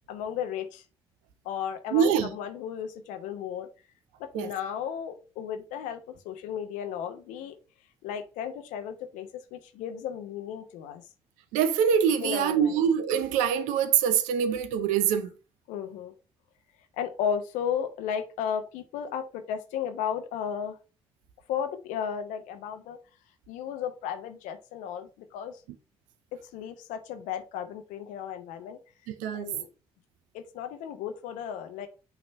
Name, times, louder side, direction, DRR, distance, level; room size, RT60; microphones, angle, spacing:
voice 1, 0.1-0.8 1.4-3.7 4.2-7.5 8.0-11.0 12.2-12.8 15.7-16.1 17.0-20.8 21.5-23.0 23.5-25.6 26.5-28.8 29.3-29.7 30.3-31.9, left 8 dB, 70° left, 0.8 m, -34 dB
voice 2, 1.9-2.3 4.3-4.5 11.5-15.3 29.1-29.5, right 8 dB, 70° right, 0.7 m, -24 dB
5.6 x 3.2 x 5.3 m
hypercardioid pair, 40°, 13 cm